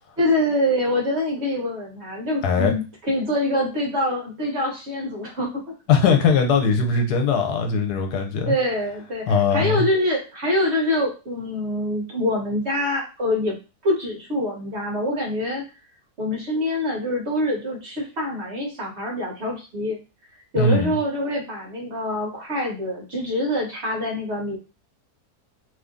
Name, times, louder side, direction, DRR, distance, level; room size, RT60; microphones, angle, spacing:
voice 1, 0.2-5.6 6.0-6.1 8.5-13.6 13.8-15.6 16.2-20.0 20.5-24.6, left 1 dB, 50° right, 0 dB, 1.0 m, -25 dB
voice 2, 2.4-2.7 5.9-8.5 9.3-9.9 20.5-21.0, left 5 dB, 85° left, 4 dB, 1.2 m, -20 dB
2.9 x 2.5 x 3.6 m, 0.31 s
omnidirectional pair, 1.7 m